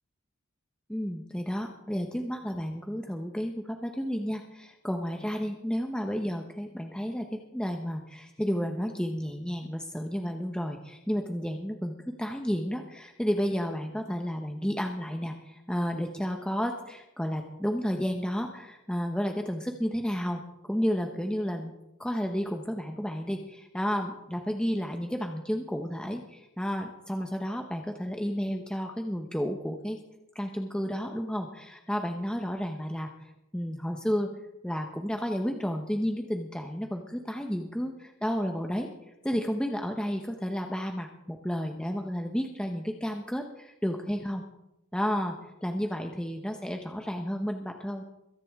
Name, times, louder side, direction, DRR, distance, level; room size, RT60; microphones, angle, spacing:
voice 1, 0.9-20.4 20.7-21.7 22.0-30.0 30.3-33.1 33.5-34.3 34.6-38.9 39.2-44.4 44.9-45.3 45.6-48.0, equal, 5° left, 3 dB, 0.9 m, -32 dB
22.5 x 10.5 x 3.6 m, 0.89 s
head